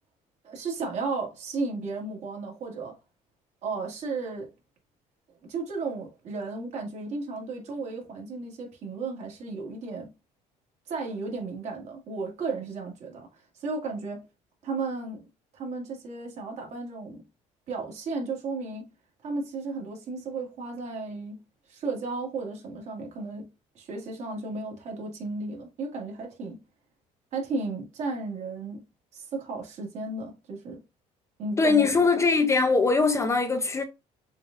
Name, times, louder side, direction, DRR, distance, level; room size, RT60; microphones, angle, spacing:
voice 1, 0.4-3.0 3.6-4.5 5.5-10.1 10.9-13.3 13.6-14.2 14.6-15.3 15.5-17.2 17.7-18.9 19.2-21.4 21.7-23.5 23.8-26.6 27.3-28.8 29.1-30.8 31.4-31.9, right 3 dB, 55° right, 2.0 m, -34 dB
voice 2, 31.6-33.8, left 4 dB, 20° left, 0.6 m, -22 dB
6.7 x 2.6 x 2.5 m
cardioid pair, 140°, 14 cm